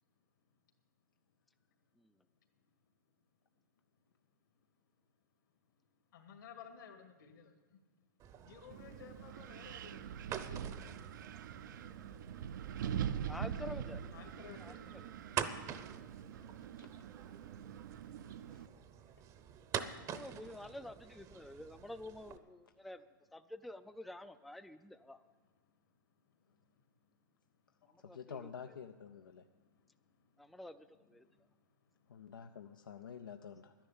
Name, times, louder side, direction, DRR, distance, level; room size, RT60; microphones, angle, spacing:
voice 1, 6.1-7.5 8.5-10.9 13.3-13.7 14.1-14.9 22.0-22.1, left 7 dB, 70° left, 5 dB, 2.0 m, -55 dB
sound 1, 8.2-22.4, right 9 dB, 30° right, 0.7 m, -47 dB
Wind, 8.7-18.7, right 9 dB, 70° right, 0.5 m, -43 dB
voice 2, 13.3-14.0 14.6-14.7 20.1-23.0 23.3-25.2 28.1-28.5 30.4-31.3, left 1 dB, ahead, 10 dB, 0.3 m, -49 dB
voice 3, 28.0-29.5 32.1-33.7, left 7 dB, 85° left, 7 dB, 0.5 m, -49 dB
11.5 x 10.0 x 7.1 m, 1.3 s
hypercardioid pair, 115°, 11 cm